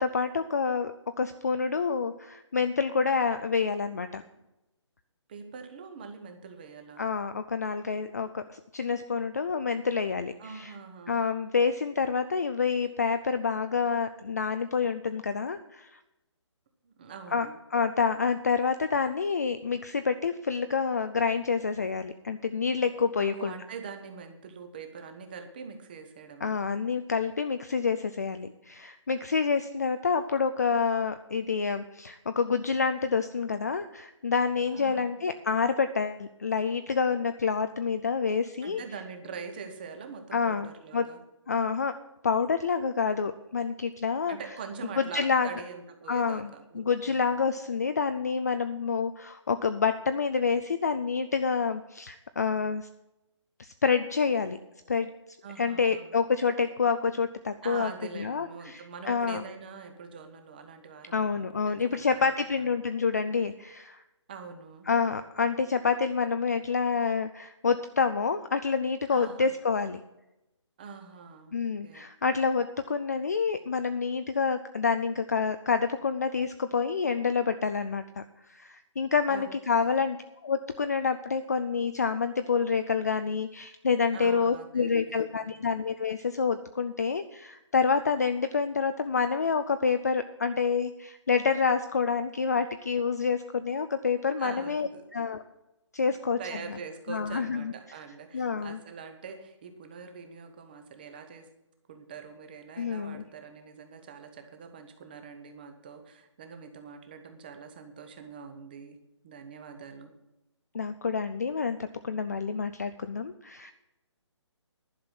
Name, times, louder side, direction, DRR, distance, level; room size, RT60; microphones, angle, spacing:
voice 1, 0.0-4.2 7.0-10.7 11.1-15.9 17.3-23.5 26.4-38.8 40.3-41.1 41.5-42.0 42.2-44.4 45.1-45.5 46.1-52.9 53.6-54.6 54.9-55.1 55.6-57.9 58.2-59.4 61.1-64.0 64.9-70.0 71.5-80.2 80.4-95.4 95.9-96.4 97.1-97.7 98.3-98.8 102.8-103.2 110.7-113.7, left 5 dB, 35° left, 9 dB, 0.4 m, -28 dB
voice 2, 5.3-7.1 10.4-11.2 16.8-17.5 23.2-26.5 34.7-35.1 38.6-41.2 44.3-47.4 55.4-56.2 57.6-62.8 64.3-64.9 69.1-69.5 70.8-71.5 71.8-72.0 79.3-80.0 84.1-85.7 94.4-95.1 96.0-101.5 101.9-109.0 109.2-110.1, right 5 dB, 20° right, 7 dB, 0.9 m, -44 dB
11.0 x 5.9 x 8.8 m, 0.92 s
hypercardioid pair, 175°, 15 cm